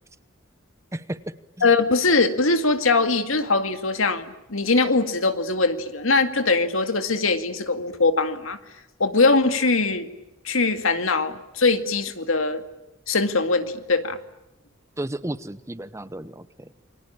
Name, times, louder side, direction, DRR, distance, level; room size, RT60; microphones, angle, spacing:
voice 1, 1.6-8.6 9.0-10.1 10.4-12.6 13.1-14.2, left 3 dB, 75° left, 8 dB, 2.1 m, -21 dB
voice 2, 15.0-16.7, right 1 dB, 15° right, 13 dB, 0.9 m, -33 dB
28.5 x 23.5 x 8.9 m, 0.93 s
head